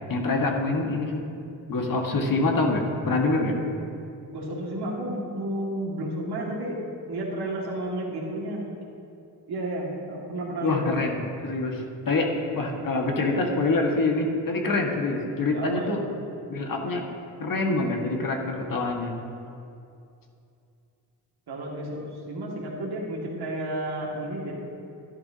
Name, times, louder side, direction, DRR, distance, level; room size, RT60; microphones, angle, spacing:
voice 1, 0.1-1.2 1.7-3.6 10.6-16.0 16.5-17.0 17.4-19.1, left 2 dB, 50° left, 1 dB, 1.8 m, -25 dB
voice 2, 4.3-6.8 7.1-8.7 9.5-11.1 15.5-16.1 21.5-24.5, right 1 dB, 65° right, -4 dB, 2.3 m, -32 dB
11.5 x 11.0 x 2.9 m, 2.5 s
supercardioid pair, 60°, 42 cm